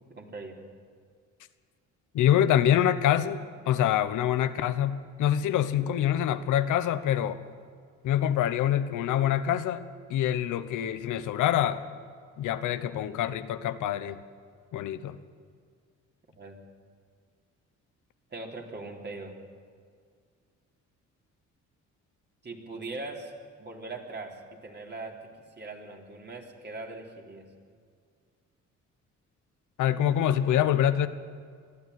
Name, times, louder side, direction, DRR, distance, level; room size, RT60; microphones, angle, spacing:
voice 1, 0.1-0.6 16.4-16.6 18.3-19.4 22.4-23.3 23.6-25.3 25.6-27.5, right 3 dB, 35° right, 1 dB, 3.7 m, -40 dB
voice 2, 2.1-7.4 8.0-9.8 10.1-11.8 12.4-14.2 14.7-15.2 29.8-31.1, left 10 dB, 85° left, 11 dB, 1.0 m, -25 dB
22.0 x 13.5 x 9.5 m, 2.1 s
cardioid pair, 90°, 30 cm